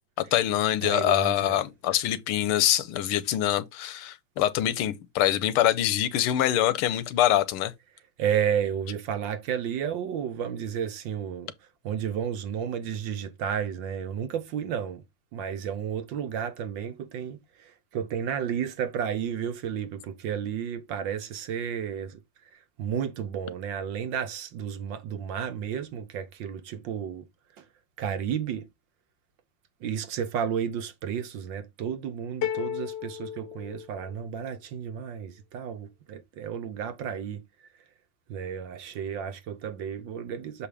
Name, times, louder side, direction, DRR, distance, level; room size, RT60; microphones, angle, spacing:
voice 1, 0.3-7.7, left 12 dB, 85° left, 1.6 m, -24 dB
voice 2, 0.8-1.6 8.2-11.5 11.8-15.0 15.3-22.2 22.8-27.3 28.0-28.7 29.8-37.4 38.3-40.7, right 8 dB, 70° right, 1.3 m, -32 dB
sound 1, 32.4-34.4, left 10 dB, 65° left, 1.2 m, -34 dB
6.8 x 5.0 x 3.4 m
omnidirectional pair, 2.4 m